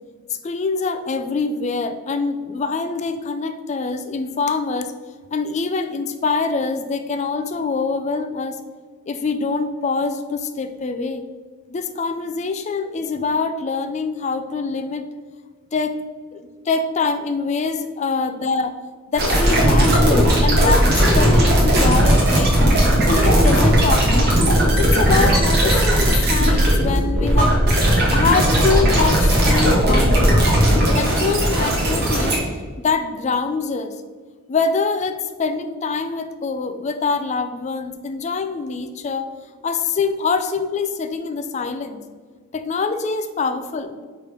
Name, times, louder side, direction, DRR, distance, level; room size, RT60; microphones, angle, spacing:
voice 1, 0.3-4.9 5.3-8.6 9.1-11.2 11.7-15.0 15.7-16.0 16.3-18.7 19.1-22.6 23.1-24.4 24.8-27.6 28.1-30.3 30.9-32.4 32.8-33.9 34.5-39.3 39.6-42.0 42.5-44.1, left 4 dB, 30° left, 8 dB, 0.3 m, -24 dB
sound 1, 19.1-32.4, equal, 45° right, 1.8 m, -16 dB
4.9 x 4.6 x 5.0 m, 1.5 s
head